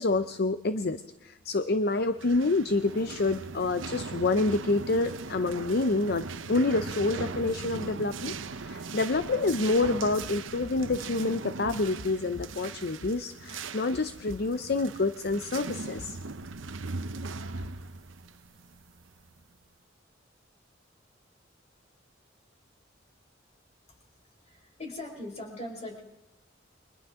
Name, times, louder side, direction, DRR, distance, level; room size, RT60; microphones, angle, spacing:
voice 1, 0.0-16.2 17.4-17.6, left 3 dB, 55° left, 10 dB, 0.7 m, -28 dB
sound 1, 2.0-19.4, right 4 dB, 85° right, 0.8 m, -39 dB
voice 2, 24.4-26.0, left 1 dB, 35° left, 1 dB, 4.7 m, -40 dB
29.5 x 23.5 x 3.7 m, 0.95 s
head